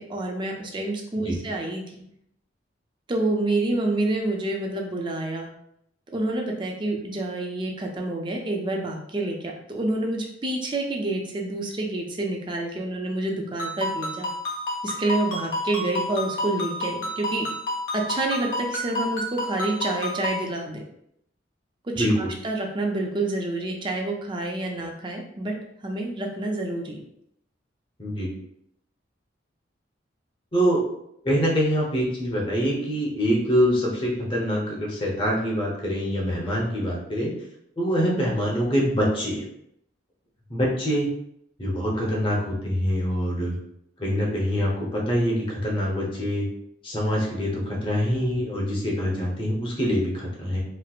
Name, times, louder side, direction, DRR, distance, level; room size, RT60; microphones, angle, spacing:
voice 1, 0.0-2.0 3.1-5.5 6.1-14.3 14.8-17.5 17.9-20.8 21.8-25.6 25.8-27.0, right 2 dB, 25° right, 1 dB, 0.5 m, -28 dB
Ringtone, 13.6-20.5, left 1 dB, 75° left, 0.8 m, -30 dB
voice 2, 21.9-22.3 28.0-28.3 30.5-30.8 31.2-37.3 37.8-39.4 40.5-41.1 41.6-43.6 44.0-46.4 46.8-50.6, equal, 30° left, -4 dB, 0.8 m, -25 dB
4.3 x 2.0 x 2.4 m, 0.75 s
head